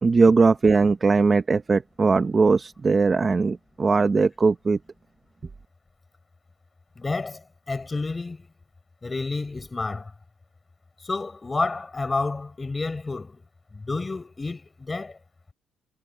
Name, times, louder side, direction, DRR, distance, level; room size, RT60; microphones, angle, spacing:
voice 1, 0.0-4.8, right 4 dB, 30° right, 1.1 m, -20 dB
voice 2, 7.0-8.5 9.0-10.1 11.0-13.4 13.7-15.2, left 3 dB, 25° left, 4.8 m, -30 dB
cardioid pair, 90°, 0 cm